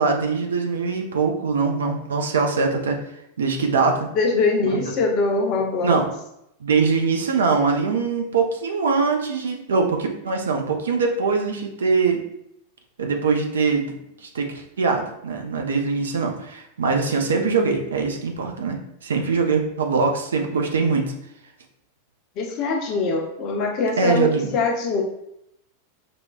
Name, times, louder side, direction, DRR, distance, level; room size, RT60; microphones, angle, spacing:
voice 1, 0.0-3.0 3.4-4.1 4.6-4.8 5.8-6.1 6.6-12.2 13.0-13.9 14.3-21.1 24.0-24.5, right 4 dB, 65° right, 3 dB, 0.5 m, -22 dB
voice 2, 4.2-6.0 22.4-25.0, left 3 dB, 40° left, 2 dB, 0.7 m, -23 dB
5.1 x 2.2 x 2.3 m, 0.79 s
figure-of-eight pair, 90°, 0 cm